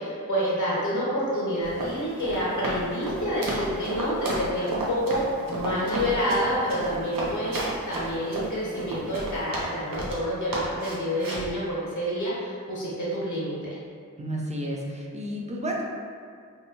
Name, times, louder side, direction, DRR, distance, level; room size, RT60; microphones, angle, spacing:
voice 1, 0.0-5.2 5.5-13.8, equal, 60° left, -6 dB, 0.7 m, -28 dB
Run, 1.6-10.2 10.5-11.5, right 2 dB, 80° right, 0.6 m, -32 dB
voice 2, 14.2-15.9, equal, 20° right, -2 dB, 0.4 m, -31 dB
2.6 x 2.1 x 2.9 m, 2.1 s
wide cardioid pair, 85°, 33 cm